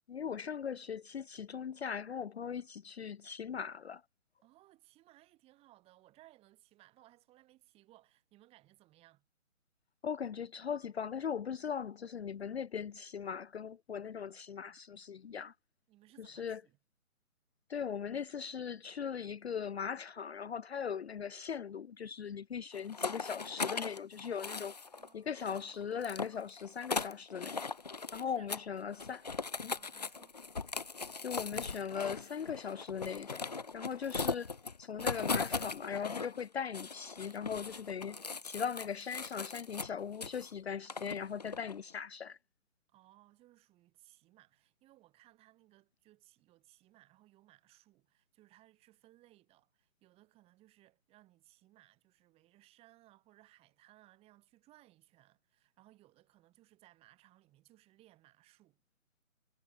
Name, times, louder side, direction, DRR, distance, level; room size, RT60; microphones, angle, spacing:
voice 1, 0.1-4.0 10.0-15.5 16.2-16.6 17.7-24.7 25.1-27.7 28.1-29.3 29.6-29.7 31.2-33.5 33.7-34.5 34.8-38.2 38.4-42.4, left 7 dB, 50° left, 0.9 m, -39 dB
voice 2, 4.4-9.2 15.9-16.8 25.0-25.7 28.2-28.5 29.7-30.4 42.9-58.8, right 16 dB, 15° right, 7.3 m, -64 dB
cardboardbox tearing, 22.7-25.1 25.4-28.2 28.5-28.7 28.9-36.4 36.7-40.5 40.9-41.8, left 4 dB, 30° left, 0.5 m, -39 dB
hypercardioid pair, 160°, 42 cm